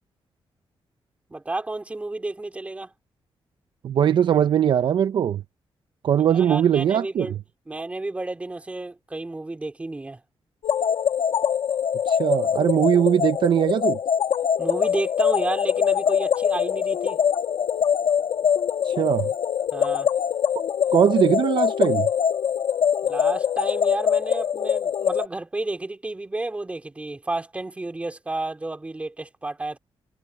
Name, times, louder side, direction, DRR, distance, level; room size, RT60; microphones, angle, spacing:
voice 1, 1.3-2.9 6.3-7.4 7.7-10.2 14.6-17.2 19.7-20.1 23.0-29.8, right 2 dB, 15° right, 2.9 m, -31 dB
voice 2, 3.8-5.4 6.0-7.3 12.1-14.0 18.8-19.3 20.9-22.1, right 9 dB, 55° right, 0.5 m, -20 dB
sound 1, 10.6-25.3, left 8 dB, 65° left, 1.4 m, -23 dB
wide cardioid pair, 170°, 10 cm